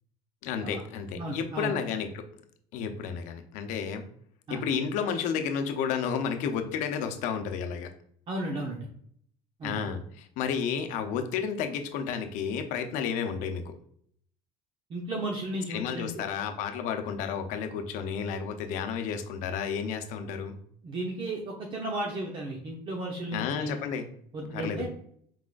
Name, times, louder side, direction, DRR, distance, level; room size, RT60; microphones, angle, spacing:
voice 1, 0.4-2.2 2.7-4.1 4.5-7.9 9.6-13.7 15.7-20.6 23.3-24.1 24.5-24.9, left 7 dB, 70° left, 7 dB, 0.7 m, -32 dB
voice 2, 1.2-1.7 4.5-4.6 8.3-8.9 9.6-9.8 14.9-16.3 20.8-23.8 24.3-24.9, right 1 dB, 40° right, 0 dB, 0.9 m, -34 dB
4.9 x 3.7 x 2.5 m, 0.63 s
cardioid pair, 120°, 13 cm